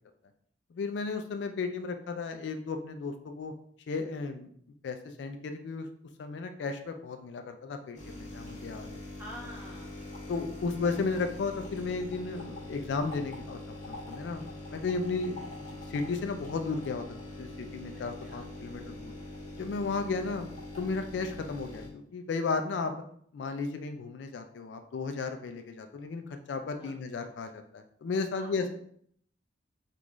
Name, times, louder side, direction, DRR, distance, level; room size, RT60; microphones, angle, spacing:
voice 1, 0.7-3.5 3.9-4.5 4.8-5.9 6.2-9.0 10.3-13.6 13.9-14.4 14.7-15.6 15.9-17.0 17.4-19.1 19.6-20.5 20.8-22.9 23.3-28.7, left 4 dB, 75° left, 7 dB, 0.3 m, -34 dB
sound 1, 7.9-21.9, left 1 dB, 40° left, 1.1 m, -43 dB
voice 2, 9.2-10.4 17.9-18.5 26.8-27.0 28.3-28.7, equal, 10° right, -6 dB, 1.0 m, -48 dB
3.7 x 2.4 x 3.0 m, 0.64 s
head